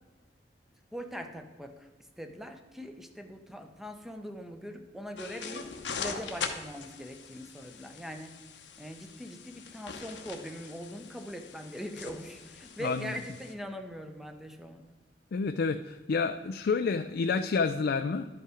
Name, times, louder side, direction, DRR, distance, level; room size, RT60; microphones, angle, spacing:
voice 1, 0.9-1.9 2.2-5.7 6.0-8.3 8.8-14.8, equal, ahead, 6 dB, 0.8 m, -42 dB
sound 1, 5.2-13.5, left 5 dB, 85° left, 0.9 m, -42 dB
voice 2, 12.8-13.1 15.3-18.3, left 4 dB, 60° left, 8 dB, 0.4 m, -29 dB
11.5 x 5.5 x 4.9 m, 1.3 s
head